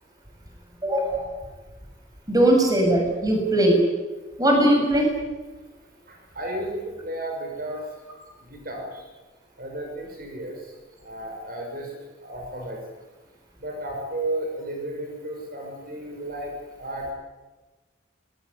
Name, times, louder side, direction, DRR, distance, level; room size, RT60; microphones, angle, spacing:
voice 1, 0.8-1.2 2.3-3.8 4.4-5.1, right 1 dB, 20° right, 1 dB, 7.1 m, -19 dB
voice 2, 6.1-7.8 8.5-9.1 9.6-10.7 11.0-11.9 12.2-12.8 13.6-17.1, right 1 dB, 50° right, 2 dB, 6.2 m, -33 dB
26.0 x 21.5 x 9.7 m, 1.2 s
head